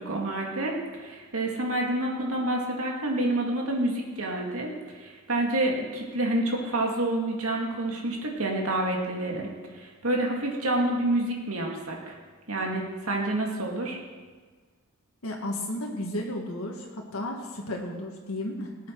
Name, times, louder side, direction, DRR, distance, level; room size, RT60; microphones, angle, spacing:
voice 1, 0.0-9.5 9.7-12.2 12.5-14.0, right 1 dB, 85° right, 0 dB, 2.3 m, -28 dB
voice 2, 15.2-18.9, left 1 dB, 75° left, 0 dB, 1.8 m, -33 dB
19.0 x 8.2 x 4.7 m, 1.4 s
head